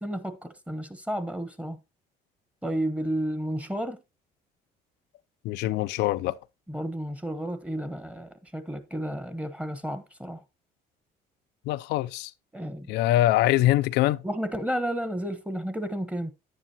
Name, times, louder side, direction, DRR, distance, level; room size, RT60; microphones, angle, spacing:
voice 1, 0.0-1.8 2.6-4.0 6.7-10.4 12.5-12.9 14.2-16.3, equal, 5° right, 1.2 m, -32 dB
voice 2, 5.4-6.4 11.7-12.3 12.9-14.2, left 15 dB, 85° left, 0.5 m, -23 dB
9.9 x 9.6 x 2.9 m
cardioid pair, 110°, 17 cm